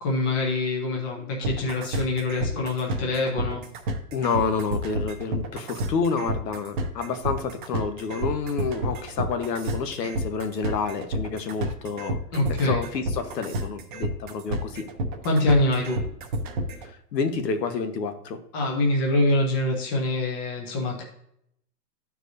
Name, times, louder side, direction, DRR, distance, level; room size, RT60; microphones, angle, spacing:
voice 1, 0.0-3.6 12.3-12.8 15.2-16.0 18.5-21.0, left 2 dB, 15° left, -1 dB, 0.6 m, -24 dB
sound 1, 1.4-16.9, right 1 dB, 30° right, 0.8 m, -30 dB
voice 2, 4.1-12.2 12.5-14.9 17.1-18.4, left 5 dB, 75° left, 8 dB, 1.2 m, -29 dB
12.5 x 4.7 x 2.6 m, 0.74 s
hypercardioid pair, 160°, 50 cm